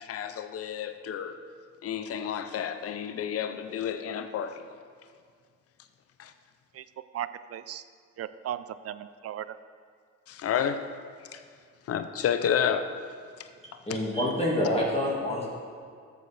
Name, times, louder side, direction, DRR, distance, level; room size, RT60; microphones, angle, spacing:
voice 1, 0.0-1.4 1.8-4.6 6.2-6.3 10.3-10.8 11.3-11.4 11.9-12.9 13.9-14.0, left 8 dB, 50° left, 0.6 m, -30 dB
voice 2, 7.1-7.8 8.2-9.5, right 11 dB, 55° right, 0.5 m, -36 dB
voice 3, 13.9-15.5, left 1 dB, 20° left, 1.8 m, -27 dB
13.0 x 7.6 x 3.3 m
cardioid pair, 90°, 30 cm